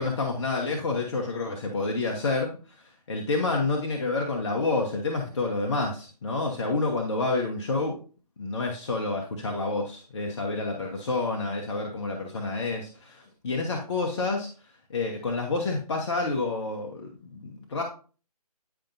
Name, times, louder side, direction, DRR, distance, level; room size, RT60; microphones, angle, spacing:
voice 1, 0.0-2.5 2.8-8.0 8.4-14.5 14.9-17.8, left 3 dB, 45° left, 1 dB, 1.2 m, -29 dB
10.0 x 5.1 x 2.7 m, 0.38 s
figure-of-eight pair, 145°, 20 cm